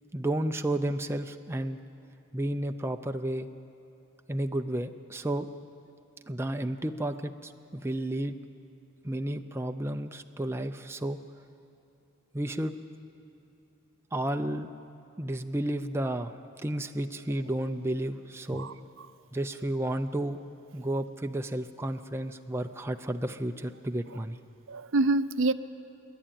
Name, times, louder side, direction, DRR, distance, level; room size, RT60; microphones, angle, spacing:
voice 1, 0.1-1.8 2.3-3.5 4.3-5.5 6.3-8.4 9.0-11.2 12.3-12.8 14.1-14.7 15.2-18.7 19.3-20.4 20.7-24.4, right 1 dB, 10° right, 6 dB, 0.5 m, -32 dB
voice 2, 18.5-19.1 24.1-24.2 24.7-25.5, right 2 dB, 65° right, 12 dB, 0.6 m, -27 dB
27.5 x 11.0 x 8.9 m, 2.9 s
head